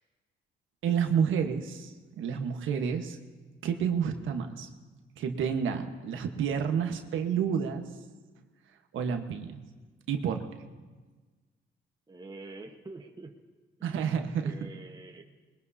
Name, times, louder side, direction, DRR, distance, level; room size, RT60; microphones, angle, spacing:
voice 1, 0.8-3.2 3.6-4.7 5.2-7.8 8.9-9.6 10.1-10.4 13.8-14.7, right 7 dB, 80° right, 5 dB, 1.3 m, -30 dB
voice 2, 8.9-9.3 12.1-13.4 13.8-14.0 14.4-15.2, right 3 dB, 20° right, 2 dB, 1.2 m, -46 dB
21.0 x 20.5 x 2.8 m, 1.3 s
cardioid pair, 90°, 20 cm